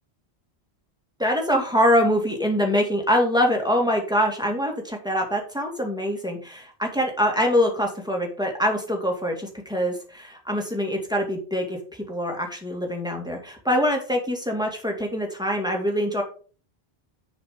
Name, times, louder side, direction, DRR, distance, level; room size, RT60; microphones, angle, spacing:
voice 1, 1.2-16.2, equal, 5° right, 1 dB, 2.3 m, -24 dB
10.5 x 4.9 x 5.2 m, 0.40 s
omnidirectional pair, 1.1 m